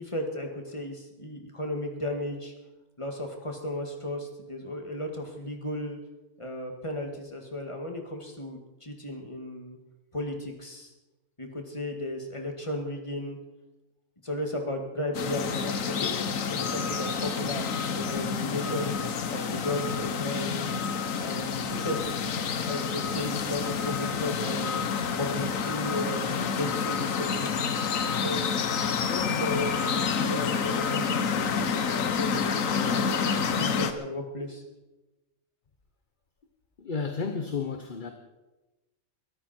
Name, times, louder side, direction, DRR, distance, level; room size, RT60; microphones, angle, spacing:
voice 1, 0.0-2.5 3.0-6.0 6.4-9.8 10.1-10.9 11.4-13.4 14.2-17.7 17.9-18.9 19.3-20.8 21.2-22.2 22.6-24.7 25.2-26.3 26.6-27.7 28.1-28.5 29.1-34.6, left 1 dB, 20° left, 3 dB, 2.2 m, -35 dB
sound 1, 15.1-33.9, left 6 dB, 70° left, 1.4 m, -29 dB
voice 2, 36.8-38.1, left 5 dB, 40° left, 7 dB, 1.1 m, -32 dB
23.0 x 13.5 x 4.4 m, 1.1 s
omnidirectional pair, 1.5 m